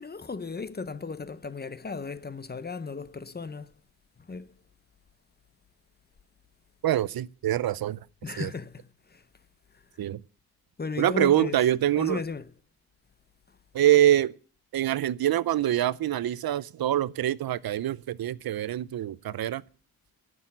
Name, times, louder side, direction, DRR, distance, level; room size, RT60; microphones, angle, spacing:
voice 1, 0.0-3.8 4.2-4.5 8.2-10.0 10.8-11.7 12.0-12.5 13.5-13.6, left 4 dB, 25° left, 0.8 m, -36 dB
voice 2, 6.8-8.0 8.4-8.5 10.0-10.2 11.0-12.2 13.7-14.4 14.7-19.6, right 12 dB, 70° right, 0.6 m, -25 dB
12.5 x 6.3 x 9.0 m
wide cardioid pair, 110°, 38 cm